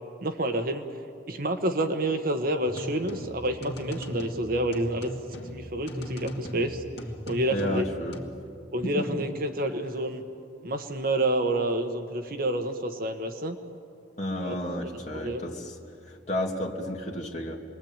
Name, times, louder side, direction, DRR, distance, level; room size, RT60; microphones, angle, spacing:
voice 1, 0.2-0.9 1.3-5.1 5.5-6.8 7.3-7.8 8.7-10.2 10.6-13.6 14.4-14.5 15.1-15.4, right 1 dB, 50° right, 6 dB, 1.3 m, -28 dB
sound 1, 2.6-8.2, equal, 60° left, 2.5 m, -38 dB
voice 2, 7.5-8.2 8.8-9.1 14.2-15.7 16.1-17.6, left 1 dB, 35° left, -1 dB, 2.8 m, -32 dB
28.5 x 21.5 x 9.0 m, 2.6 s
head